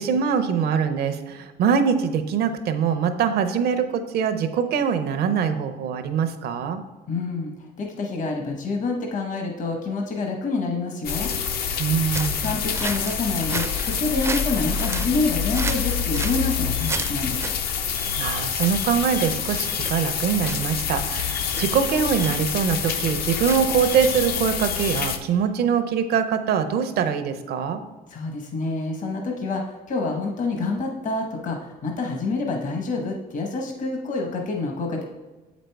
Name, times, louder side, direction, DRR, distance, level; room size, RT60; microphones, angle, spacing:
voice 1, 0.0-6.8 11.8-12.5 18.2-27.8, right 7 dB, 70° right, 9 dB, 0.7 m, -23 dB
voice 2, 7.1-7.5 7.8-11.3 12.4-17.5 28.1-35.0, left 3 dB, 50° left, 2 dB, 1.0 m, -27 dB
sound 1, 11.0-25.2, left 7 dB, 65° left, 0.6 m, -27 dB
sound 2, 12.1-24.1, right 3 dB, 15° right, 0.4 m, -35 dB
7.5 x 5.1 x 3.4 m, 1.2 s
cardioid pair, 110°, 17 cm